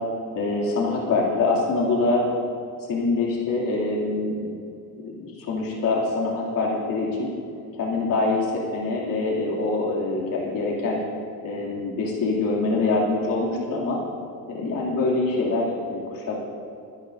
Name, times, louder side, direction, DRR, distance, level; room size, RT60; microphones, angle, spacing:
voice 1, 0.3-2.2 2.9-4.4 4.9-7.3 7.7-11.0 11.4-14.0 14.5-16.4, left 3 dB, 60° left, -4 dB, 2.8 m, -24 dB
22.5 x 11.0 x 2.7 m, 2.6 s
cardioid pair, 125°, 37 cm